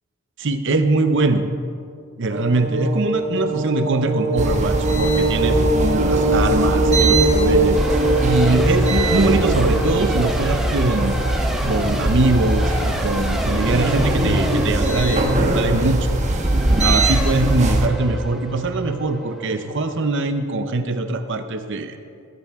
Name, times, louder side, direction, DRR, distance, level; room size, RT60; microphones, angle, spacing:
voice 1, 0.4-1.5 2.2-7.8 8.2-11.1 11.6-16.2 16.8-22.0, right 2 dB, 55° right, 8 dB, 0.7 m, -22 dB
sound 1, 2.3-10.3, right 2 dB, 75° right, 1.9 m, -22 dB
sound 2, 4.4-17.9, right 1 dB, 30° right, 1.0 m, -21 dB
Race car auto racing / Accelerating revving vroom / Mechanisms, 7.7-20.3, equal, ahead, 0.8 m, -30 dB
14.5 x 14.5 x 3.6 m, 2.3 s
head